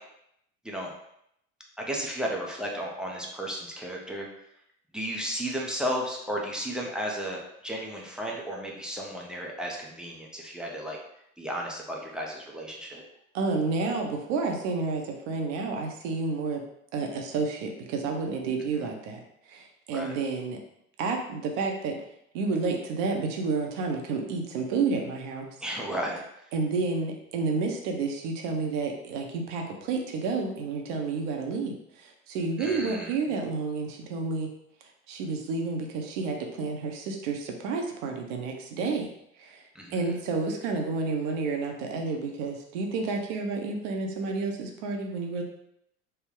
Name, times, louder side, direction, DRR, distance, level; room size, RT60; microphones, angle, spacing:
voice 1, 1.8-4.3 4.9-11.0 11.4-13.0 18.8-18.9 19.9-20.1 25.6-26.2 32.6-33.1 39.8-40.0, equal, ahead, -2 dB, 0.5 m, -34 dB
voice 2, 13.3-16.6 16.9-19.2 19.5-20.6 21.0-22.0 22.3-25.5 26.5-34.5 35.1-39.1 39.4-39.6 39.9-45.4, right 4 dB, 60° right, 2 dB, 0.8 m, -30 dB
3.3 x 2.2 x 3.6 m, 0.77 s
hypercardioid pair, 80°, 42 cm